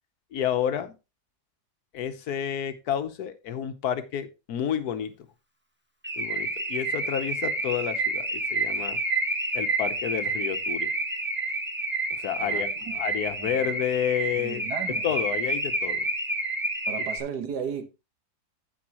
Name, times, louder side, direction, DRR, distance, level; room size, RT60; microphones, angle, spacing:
voice 1, 0.3-1.0 1.9-5.1 6.2-9.0 9.5-10.9 12.1-16.1, left 9 dB, 70° left, 1.4 m, -30 dB
Car / Alarm, 6.0-17.2, right 2 dB, 10° right, 1.2 m, -29 dB
voice 2, 12.4-12.9 13.4-13.5 14.4-15.0 16.9-17.9, right 7 dB, 75° right, 1.7 m, -35 dB
15.0 x 5.3 x 3.0 m
omnidirectional pair, 1.7 m